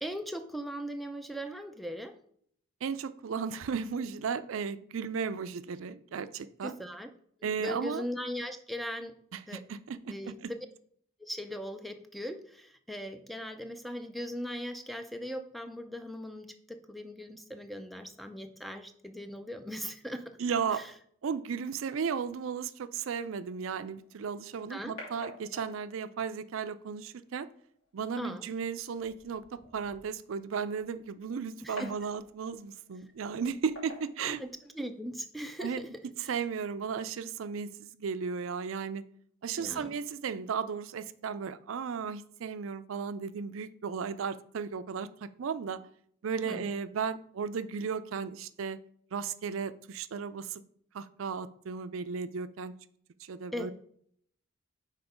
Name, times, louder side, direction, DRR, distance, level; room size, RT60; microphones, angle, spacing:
voice 1, 0.0-2.2 6.6-7.1 7.4-9.2 9.5-9.6 10.1-10.7 11.2-20.4 20.7-20.9 24.7-24.9 28.2-28.5 31.6-31.9 34.2-35.9 39.6-40.0 46.4-46.7 53.5-53.7, equal, ahead, 7 dB, 0.4 m, -39 dB
voice 2, 2.8-6.8 7.4-8.0 9.3-10.5 20.4-20.8 21.2-27.5 27.9-34.4 35.6-35.8 36.3-39.0 39.4-45.8 46.2-48.8 49.1-50.6 50.9-52.7 53.2-53.7, right 6 dB, 80° right, 13 dB, 0.4 m, -35 dB
sound 1, 24.0-35.0, left 1 dB, 90° left, 2.9 m, -52 dB
5.9 x 4.3 x 5.0 m, 0.65 s
head